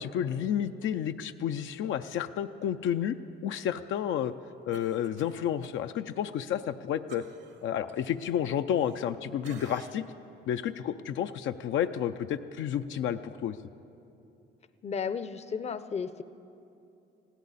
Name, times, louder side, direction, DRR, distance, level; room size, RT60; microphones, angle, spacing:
voice 1, 0.0-3.2 3.4-4.3 4.7-7.2 7.6-10.0 10.5-13.6, left 9 dB, 75° left, 8 dB, 0.5 m, -31 dB
Cough, 4.7-5.8 6.1-6.3 7.1-9.1 9.4-10.2 10.6-10.8, right 5 dB, 65° right, 1.1 m, -51 dB
voice 2, 14.8-16.2, left 6 dB, 35° left, 12 dB, 0.6 m, -33 dB
20.5 x 15.5 x 4.1 m, 2.8 s
cardioid pair, 90°, 20 cm